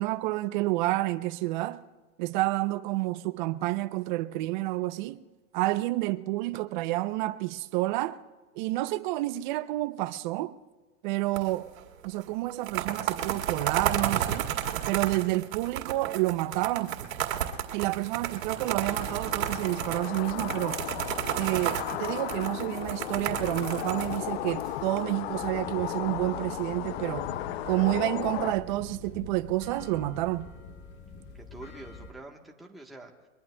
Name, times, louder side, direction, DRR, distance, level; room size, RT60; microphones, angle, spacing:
voice 1, 0.0-1.8 2.2-5.2 5.5-8.2 8.6-10.5 11.0-11.7 12.0-14.5 14.9-17.0 17.7-20.8 21.4-27.3 27.7-30.5, right 18 dB, 35° right, 0.5 m, -29 dB
sound 1, 11.4-12.1 12.5-25.0, right 10 dB, 80° right, 2.1 m, -32 dB
sound 2, 18.4-28.5, left 14 dB, 50° left, 0.5 m, -35 dB
sound 3, 22.7-32.1, left 3 dB, 25° left, 1.4 m, -45 dB
voice 2, 31.3-33.3, right 2 dB, ahead, 1.1 m, -46 dB
22.5 x 21.5 x 2.2 m
hypercardioid pair, 145°, 40 cm